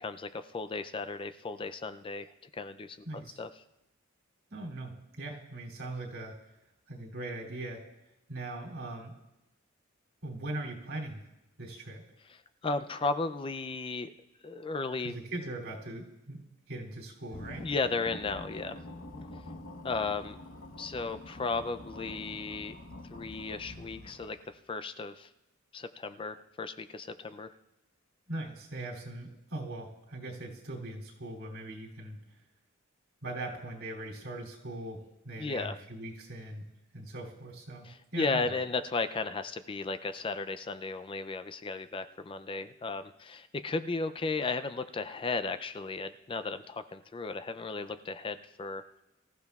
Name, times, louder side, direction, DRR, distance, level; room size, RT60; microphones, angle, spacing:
voice 1, 0.0-3.0 3.4-3.5 12.6-14.1 14.4-15.1 17.6-18.8 19.8-20.4 20.8-22.8 23.1-24.4 24.7-25.3 25.7-27.5 35.4-35.7 37.8-48.8, left 3 dB, 25° left, 11 dB, 0.4 m, -35 dB
voice 2, 3.0-3.4 4.5-6.3 6.9-7.8 8.3-9.2 10.2-11.2 11.6-12.0 15.0-17.7 28.3-32.2 33.2-36.6 36.9-38.6, right 2 dB, 80° right, -2 dB, 2.9 m, -40 dB
sound 1, 17.3-24.5, left 1 dB, 70° left, 1.1 m, -46 dB
24.5 x 14.0 x 2.4 m, 0.95 s
head